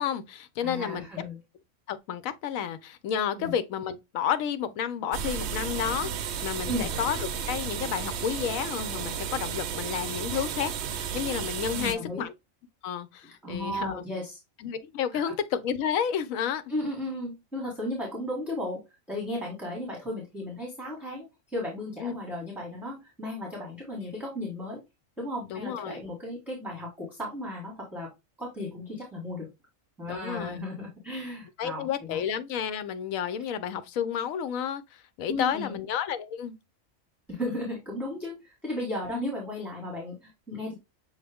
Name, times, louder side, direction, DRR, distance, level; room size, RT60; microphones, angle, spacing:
voice 1, 0.0-1.1 1.9-12.3 12.8-14.0 14.6-16.6 22.0-22.2 25.5-26.1 30.1-30.6 31.6-36.5 39.1-39.3, left 8 dB, 80° left, 1.0 m, -31 dB
voice 2, 0.6-1.4 3.4-3.6 6.6-6.9 11.7-12.2 13.4-14.4 15.1-15.3 16.7-24.8 25.2-28.1 28.4-29.5 30.0-32.2 35.3-35.8 37.3-40.7, left 1 dB, ahead, 1.3 m, -35 dB
sound 1, 5.1-11.9, right 7 dB, 65° right, 0.7 m, -33 dB
6.4 x 2.4 x 3.4 m
omnidirectional pair, 1.4 m